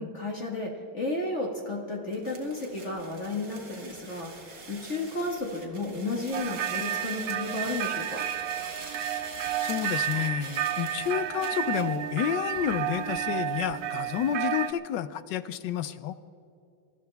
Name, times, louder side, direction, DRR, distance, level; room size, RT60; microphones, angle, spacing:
voice 1, 0.0-8.2, left 2 dB, 35° left, -1 dB, 1.8 m, -33 dB
sound 1, 2.1-12.0, right 3 dB, 45° right, 2.5 m, -44 dB
sound 2, 6.3-14.7, right 11 dB, 90° right, 1.5 m, -31 dB
voice 2, 9.6-16.1, left 10 dB, 70° left, 13 dB, 1.2 m, -30 dB
27.5 x 13.0 x 3.4 m, 2.7 s
omnidirectional pair, 2.2 m